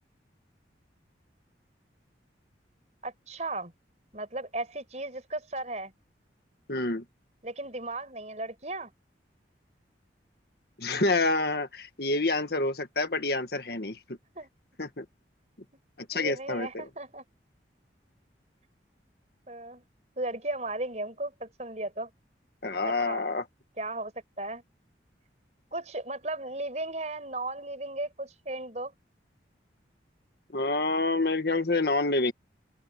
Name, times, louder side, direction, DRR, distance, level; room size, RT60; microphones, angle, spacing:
voice 1, 3.0-3.7 4.1-5.9 7.4-8.9 14.3-14.5 16.1-17.2 19.5-19.8 20.2-22.1 22.8-23.2 23.8-24.1 24.4-24.6 25.7-28.9, right 2 dB, 40° right, 5.0 m, -35 dB
voice 2, 6.7-7.0 10.8-14.0 14.8-15.0 16.1-16.8 22.6-23.4 30.5-32.3, left 2 dB, 55° left, 1.7 m, -27 dB
head